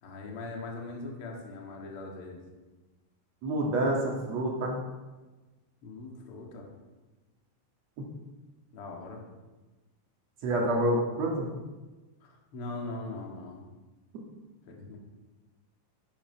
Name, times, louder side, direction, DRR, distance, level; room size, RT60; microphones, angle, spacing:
voice 1, 0.0-2.4 5.8-6.7 8.7-9.2 12.2-13.6 14.7-15.0, left 2 dB, 65° left, 0 dB, 1.4 m, -41 dB
voice 2, 3.4-4.8 10.4-11.5, right 1 dB, 55° right, -1 dB, 2.0 m, -27 dB
11.5 x 9.6 x 5.7 m, 1.2 s
omnidirectional pair, 5.7 m